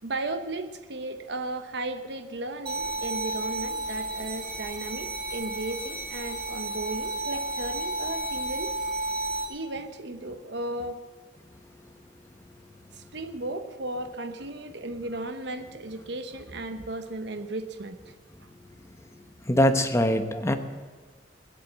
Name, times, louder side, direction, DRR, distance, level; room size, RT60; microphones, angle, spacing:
voice 1, 0.0-8.7 9.5-11.0 12.9-18.0, right 2 dB, 65° right, 7 dB, 1.0 m, -35 dB
sound 1, 2.7-9.5, right 1 dB, 30° right, 2.4 m, -32 dB
voice 2, 19.1-20.5, left 1 dB, 15° left, 7 dB, 0.9 m, -23 dB
21.0 x 8.3 x 7.4 m, 1.4 s
head